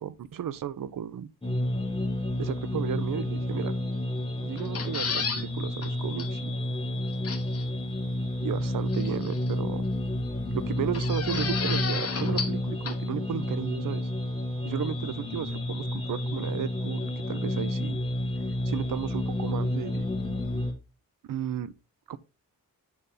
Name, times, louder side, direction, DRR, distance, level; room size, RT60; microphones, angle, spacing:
voice 1, 0.0-1.3 2.4-3.8 4.4-6.5 8.4-9.8 10.5-14.1 14.6-18.0 18.7-20.1 21.2-21.7 22.1-22.2, right 9 dB, 70° right, 0.6 m, -34 dB
sound 1, 1.4-20.7, left 1 dB, 15° left, 1.3 m, -30 dB
sound 2, 4.6-5.4 5.8-5.9 6.2-6.3 7.2-7.6 8.9-9.5 10.9-12.6 12.9-13.0, left 5 dB, 45° left, 1.0 m, -32 dB
9.1 x 4.1 x 3.7 m
wide cardioid pair, 135°, 34 cm